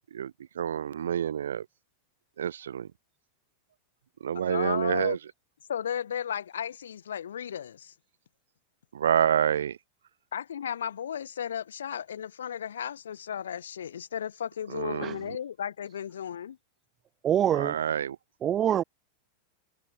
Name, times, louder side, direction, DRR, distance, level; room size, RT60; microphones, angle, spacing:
voice 1, 0.1-1.7 2.4-2.9 4.2-5.2 8.9-9.8 14.7-15.4 17.5-18.2, right 9 dB, 65° right, 1.2 m, -28 dB
voice 2, 4.5-5.2 5.7-7.9 10.3-16.6, left 9 dB, 65° left, 0.4 m, -34 dB
voice 3, 17.2-17.7 18.4-18.8, right 10 dB, 25° right, 0.5 m, -25 dB
figure-of-eight pair, 90°, 0 cm